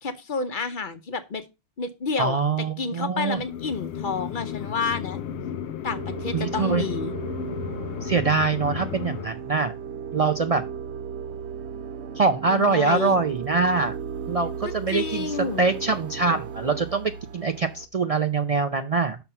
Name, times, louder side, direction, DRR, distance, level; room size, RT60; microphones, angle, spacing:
voice 1, 0.0-1.4 1.8-2.4 2.8-5.2 5.8-7.1 12.5-13.2 14.9-15.7, left 4 dB, 55° left, 9 dB, 0.9 m, -29 dB
voice 2, 2.2-3.4 6.3-6.8 8.0-9.7 10.1-10.6 12.2-14.0 14.3-19.2, right 4 dB, 45° right, 8 dB, 0.5 m, -24 dB
sound 1, 3.3-9.3, left 9 dB, 90° left, 0.9 m, -33 dB
sound 2, 5.9-17.9, right 7 dB, 90° right, 1.0 m, -36 dB
6.0 x 5.7 x 5.5 m, 0.26 s
omnidirectional pair, 1.1 m